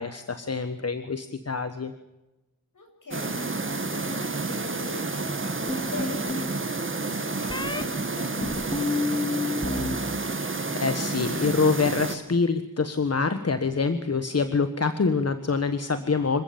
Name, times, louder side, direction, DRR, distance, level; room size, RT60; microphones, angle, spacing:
voice 1, 0.0-1.9 10.4-16.4, left 4 dB, 50° left, 10 dB, 1.4 m, -26 dB
voice 2, 2.7-10.0, left 2 dB, 75° left, 3 dB, 7.9 m, -41 dB
sound 1, 3.1-12.2, right 3 dB, 40° right, 1.9 m, -30 dB
sound 2, 5.7-6.5 7.5-7.8 8.4-10.0 10.2-10.8, left 2 dB, 15° left, 2.0 m, -29 dB
26.5 x 15.5 x 8.7 m, 1.0 s
wide cardioid pair, 110°, 32 cm